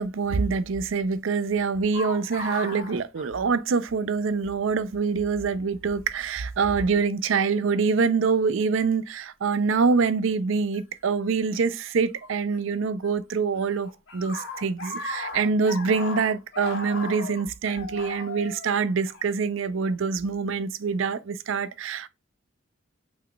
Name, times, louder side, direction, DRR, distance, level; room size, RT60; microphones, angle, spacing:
voice 1, 0.0-22.1, right 5 dB, 65° right, 0.4 m, -25 dB
sound 1, 1.9-4.0 4.3-4.4 5.4-5.6 6.7-6.9 7.6-8.1 10.7-10.8 12.2-13.1 13.3-19.9, left 3 dB, 60° left, 1.4 m, -37 dB
6.1 x 3.9 x 2.2 m
head